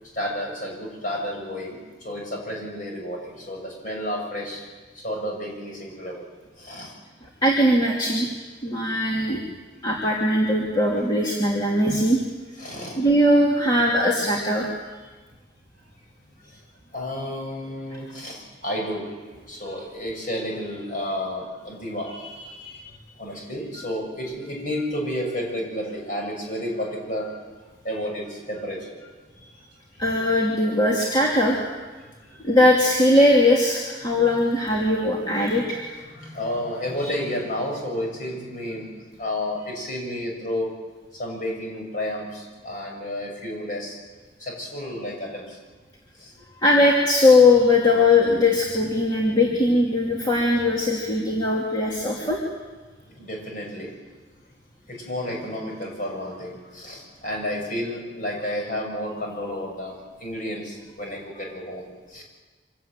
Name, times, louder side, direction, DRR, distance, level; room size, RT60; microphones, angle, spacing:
voice 1, 0.0-4.7 4.9-6.3 6.6-7.0 8.7-8.9 12.6-13.1 16.5-16.6 16.9-27.4 27.8-29.1 32.0-32.4 35.5-35.7 35.9-38.9 39.2-40.7 41.1-44.0 44.4-45.6 46.1-46.3 53.1-53.9 54.9-62.2, left 1 dB, 45° left, 0 dB, 7.2 m, -31 dB
voice 2, 7.4-8.3 8.6-9.4 9.8-12.2 13.0-14.7 30.0-31.6 32.4-35.8 46.6-52.4, left 1 dB, 25° left, -4 dB, 2.9 m, -20 dB
25.5 x 17.0 x 9.1 m, 1.3 s
head